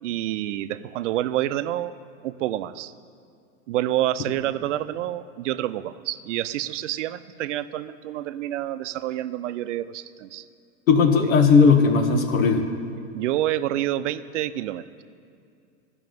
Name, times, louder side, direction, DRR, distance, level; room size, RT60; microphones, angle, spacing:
voice 1, 0.0-2.0 2.2-2.9 3.7-10.4 11.2-11.3 13.1-15.0, right 13 dB, 65° right, 14 dB, 0.6 m, -28 dB
voice 2, 10.9-12.6, left 5 dB, 90° left, 5 dB, 1.6 m, -17 dB
13.0 x 6.2 x 9.3 m, 2.5 s
hypercardioid pair, 130°, 40 cm